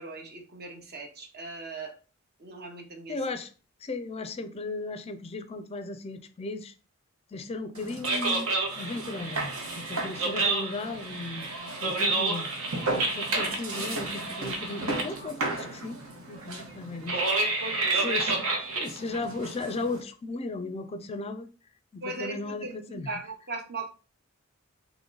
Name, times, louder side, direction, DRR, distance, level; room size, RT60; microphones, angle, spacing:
voice 1, 0.0-2.0 2.4-3.2 11.8-12.1 17.4-18.1 22.0-23.9, right 2 dB, 50° right, 0.9 m, -39 dB
voice 2, 3.1-3.5 3.8-6.7 7.3-11.5 11.8-17.2 17.9-18.3 18.8-21.5 21.9-23.1, left 3 dB, 30° left, 0.4 m, -36 dB
sound 1, 7.8-20.0, right 3 dB, 85° right, 1.1 m, -30 dB
3.7 x 3.0 x 3.8 m
head